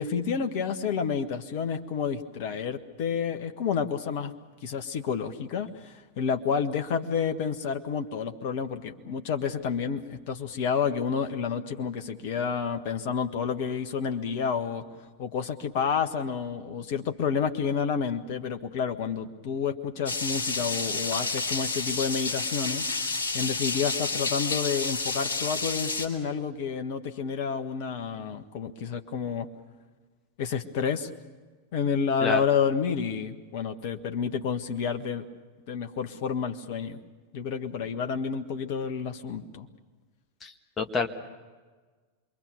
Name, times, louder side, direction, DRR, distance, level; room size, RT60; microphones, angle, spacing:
voice 1, 0.0-4.3 4.6-14.8 15.2-22.8 23.3-29.5 30.4-31.1 31.7-35.2 35.7-37.0 37.3-39.7, left 6 dB, 50° left, 6 dB, 1.5 m, -29 dB
sound 1, 20.1-26.1, left 3 dB, 70° left, 2.6 m, -30 dB
voice 2, 40.4-41.1, left 4 dB, 20° left, 4 dB, 1.8 m, -28 dB
27.0 x 23.0 x 6.7 m, 1.4 s
figure-of-eight pair, 90°, 0 cm